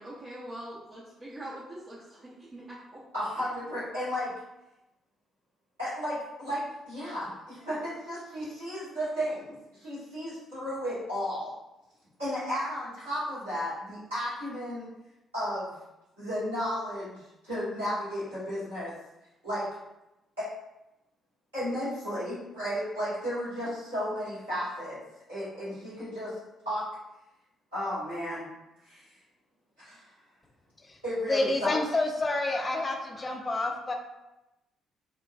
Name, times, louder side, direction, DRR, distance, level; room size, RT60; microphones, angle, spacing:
voice 1, 0.0-3.0, right 1 dB, 35° right, -9 dB, 0.7 m, -43 dB
voice 2, 3.1-4.3 5.8-11.5 12.2-14.9 15.3-15.7 16.2-18.9 19.4-19.7 20.4-20.5 21.5-25.0 25.3-26.4 26.6-26.8 27.7-28.5 28.8-29.1 29.8-30.1 31.0-31.8 32.5-32.6, equal, 85° right, -18 dB, 1.4 m, -33 dB
voice 3, 31.3-33.9, left 2 dB, 25° left, 3 dB, 0.4 m, -29 dB
3.0 x 2.2 x 2.2 m, 0.93 s
figure-of-eight pair, 40°, 0 cm